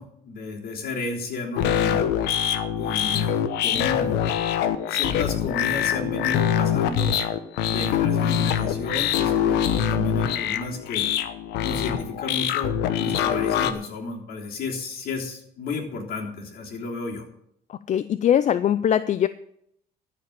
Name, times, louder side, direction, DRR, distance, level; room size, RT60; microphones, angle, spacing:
voice 1, 0.0-2.0 2.8-4.3 4.9-7.1 7.6-11.0 11.6-17.3, left 3 dB, 60° left, 0 dB, 3.4 m, -32 dB
sound 1, 1.6-13.7, left 9 dB, 90° left, 1.0 m, -24 dB
voice 2, 17.9-19.3, left 10 dB, 45° left, 14 dB, 0.5 m, -21 dB
13.5 x 5.2 x 8.5 m, 0.72 s
cardioid pair, 110°, 17 cm